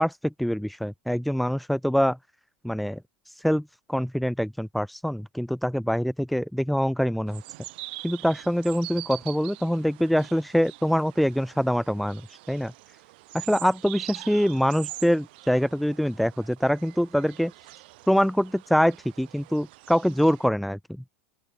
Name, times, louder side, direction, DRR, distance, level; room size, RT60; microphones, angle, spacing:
voice 1, 0.0-2.2 2.6-3.0 3.3-7.4 8.0-12.7 13.3-17.5 18.1-21.1, equal, ahead, 1.3 m, -24 dB
sound 1, 7.3-20.5, right 21 dB, 60° right, 4.0 m, -44 dB
open air
hypercardioid pair, 90°, 6 cm